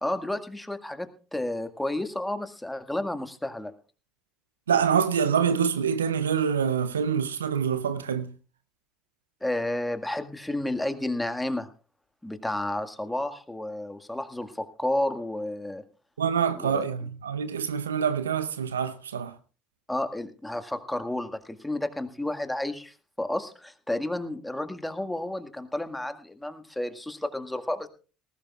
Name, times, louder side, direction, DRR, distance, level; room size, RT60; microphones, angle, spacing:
voice 1, 0.0-3.7 9.4-11.7 12.2-15.8 16.5-16.8 19.9-27.9, left 1 dB, 10° left, 1.9 m, -31 dB
voice 2, 4.7-8.3 16.2-19.3, right 7 dB, 85° right, 0.7 m, -26 dB
19.0 x 16.5 x 2.4 m
hypercardioid pair, 60°, 0 cm